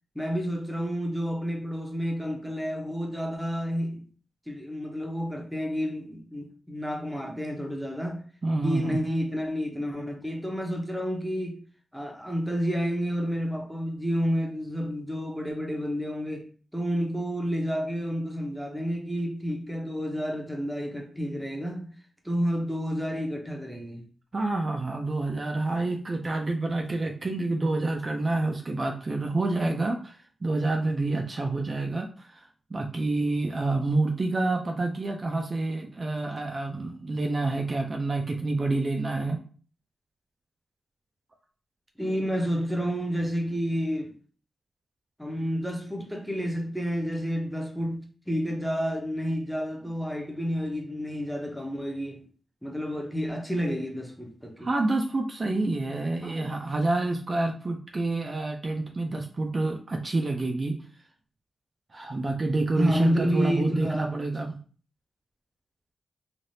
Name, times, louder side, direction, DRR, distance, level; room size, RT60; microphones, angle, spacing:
voice 1, 0.1-4.1 4.5-8.2 8.6-11.6 11.9-16.5 16.7-21.9 22.2-24.1 42.0-44.1 45.2-52.3 52.6-54.7 56.2-56.5 62.7-64.1, equal, ahead, 0.7 m, -30 dB
voice 2, 8.4-9.0 24.3-32.4 32.7-39.4 54.6-60.8 61.9-64.6, right 2 dB, 35° right, 0.4 m, -28 dB
3.2 x 2.4 x 2.7 m
wide cardioid pair, 95°, 0 cm